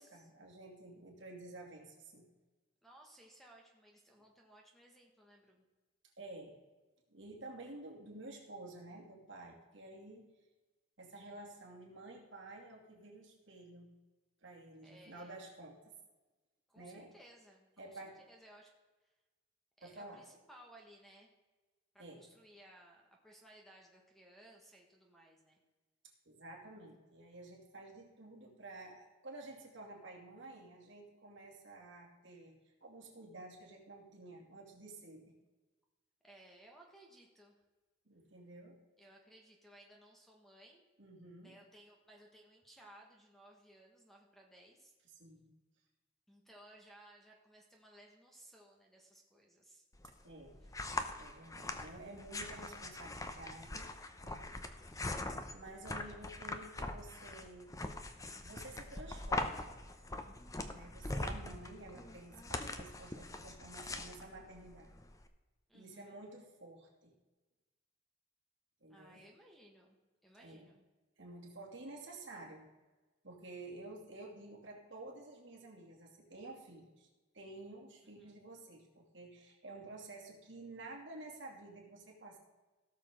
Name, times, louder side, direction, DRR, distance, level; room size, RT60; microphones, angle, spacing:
voice 1, 0.0-2.3 6.2-6.6 7.1-10.2 11.0-13.9 14.4-15.9 16.8-17.1 17.8-18.2 19.8-20.3 22.0-22.3 26.2-35.4 38.1-38.8 41.0-41.5 45.2-45.5 50.2-50.6 51.2-53.9 54.2-54.6 55.5-57.7 58.4-59.7 60.7-64.9 65.7-67.1 68.8-69.2 70.4-70.7 71.2-72.7 73.2-77.1 77.3-82.4, right 2 dB, 65° right, -1 dB, 2.7 m, -51 dB
voice 2, 2.8-5.6 14.8-15.4 16.7-18.7 19.0-19.1 19.8-21.3 21.9-25.6 36.2-37.6 39.0-40.8 41.4-44.9 46.3-49.8 54.7-55.2 65.7-66.2 68.9-70.0 70.2-70.8 78.2-78.3, right 1 dB, ahead, 0 dB, 1.5 m, -60 dB
sound 1, 49.9-65.3, left 2 dB, 15° left, 0.7 m, -42 dB
17.0 x 6.7 x 3.8 m, 1.2 s
head